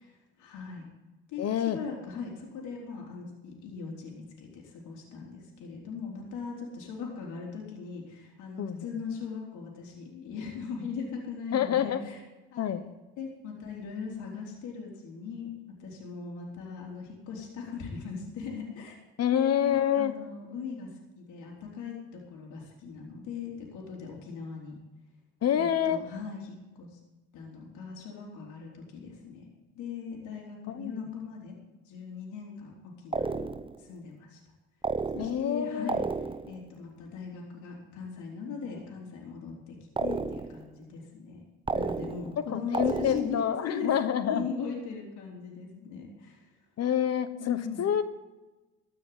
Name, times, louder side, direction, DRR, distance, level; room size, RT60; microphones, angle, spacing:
voice 1, 0.1-0.8 1.3-1.4 1.7-12.2 12.5-12.8 13.2-15.5 15.8-19.0 19.3-24.8 25.5-26.9 27.3-29.5 29.8-31.6 31.9-33.4 33.8-34.4 35.1-36.0 36.5-41.4 41.7-43.4 43.6-43.9 44.3-46.5 47.4-47.9, left 5 dB, 80° left, -1 dB, 3.6 m, -39 dB
voice 2, 1.4-1.8 8.6-8.9 11.5-12.0 12.6-12.8 19.2-20.1 25.4-26.0 30.7-31.0 35.2-36.0 42.4-44.5 46.8-48.0, left 9 dB, 55° left, 12 dB, 1.2 m, -27 dB
sound 1, 33.1-33.8 34.8-35.6 35.9-36.6 40.0-40.7 41.7-42.4 42.7-43.5, right 4 dB, 20° right, 0.7 m, -32 dB
13.5 x 6.3 x 9.1 m, 1.1 s
supercardioid pair, 70°, 30 cm